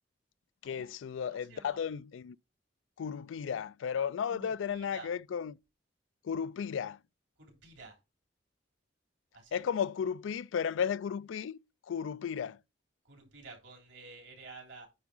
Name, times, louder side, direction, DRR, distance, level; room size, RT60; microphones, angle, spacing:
voice 1, 0.6-2.4 3.0-5.5 6.2-7.0 9.5-11.6 11.9-12.6, left 7 dB, 85° left, 0.3 m, -34 dB
voice 2, 1.3-1.8 4.3-5.1 7.4-8.0 9.3-9.6 13.0-14.9, right 3 dB, 80° right, 3.1 m, -51 dB
9.5 x 3.5 x 5.4 m
head